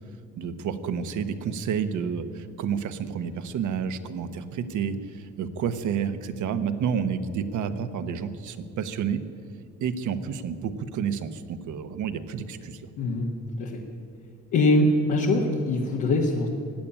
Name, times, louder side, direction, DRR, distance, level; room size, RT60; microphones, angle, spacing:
voice 1, 0.4-9.2 9.8-12.8, right 7 dB, 80° right, 9 dB, 1.1 m, -30 dB
voice 2, 13.0-13.3 13.6-13.7 14.5-16.5, left 2 dB, 85° left, -2 dB, 1.6 m, -22 dB
16.0 x 8.8 x 9.8 m, 2.6 s
cardioid pair, 90°, 30 cm